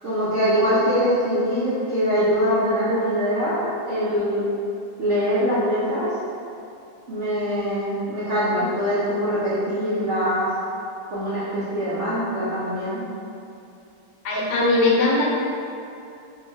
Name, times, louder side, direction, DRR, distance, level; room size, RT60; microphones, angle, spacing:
voice 1, 0.0-4.5 5.0-6.1 7.1-10.5 11.1-13.0, equal, 55° right, -11 dB, 0.9 m, -23 dB
voice 2, 14.2-15.4, left 2 dB, 80° left, -2 dB, 1.3 m, -20 dB
2.8 x 2.8 x 4.3 m, 2.6 s
omnidirectional pair, 2.0 m